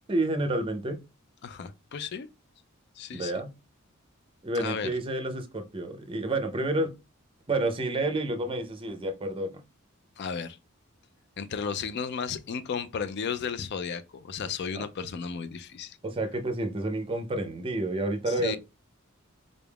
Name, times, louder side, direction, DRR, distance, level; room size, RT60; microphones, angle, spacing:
voice 1, 0.1-1.0 3.1-3.5 4.4-6.9 7.5-9.5 14.7-14.9 16.0-18.6, right 2 dB, 25° right, 0.6 m, -29 dB
voice 2, 1.4-2.3 3.0-3.3 4.5-4.9 10.2-10.6 11.4-16.0 18.3-18.6, left 6 dB, 55° left, 0.4 m, -34 dB
3.9 x 3.5 x 2.3 m
head